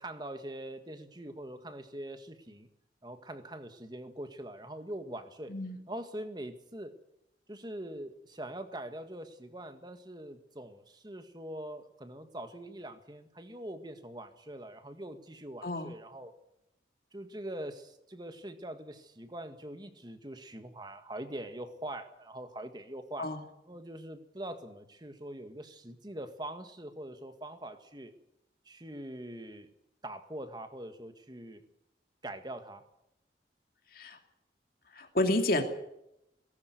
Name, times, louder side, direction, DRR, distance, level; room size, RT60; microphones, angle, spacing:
voice 1, 0.0-2.7 3.0-5.5 5.9-6.9 7.5-16.3 17.1-23.3 23.7-28.1 28.7-29.7 30.0-31.6 32.2-32.8, right 1 dB, 25° right, 8 dB, 1.7 m, -43 dB
voice 2, 15.6-15.9 23.2-23.4 33.9-34.2 34.9-35.6, left 1 dB, 55° left, 5 dB, 2.7 m, -30 dB
18.5 x 16.5 x 9.4 m, 0.84 s
head